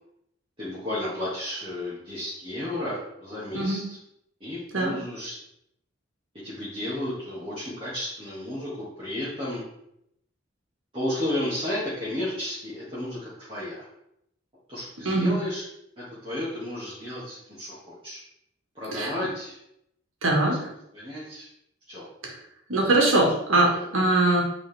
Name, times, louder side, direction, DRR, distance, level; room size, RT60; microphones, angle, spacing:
voice 1, 0.6-3.8 4.4-5.4 6.4-9.6 10.9-13.9 14.7-15.6 16.0-18.2 18.8-19.6 20.5-20.6 20.9-21.5 21.9-22.0 23.7-23.9, left 1 dB, 25° right, -11 dB, 2.1 m, -33 dB
voice 2, 3.5-3.8 4.7-4.9 15.1-15.4 18.9-19.1 20.2-20.7 22.2-22.4 22.7-24.4, right 2 dB, 90° right, -1 dB, 1.9 m, -22 dB
8.7 x 4.0 x 3.5 m, 0.77 s
head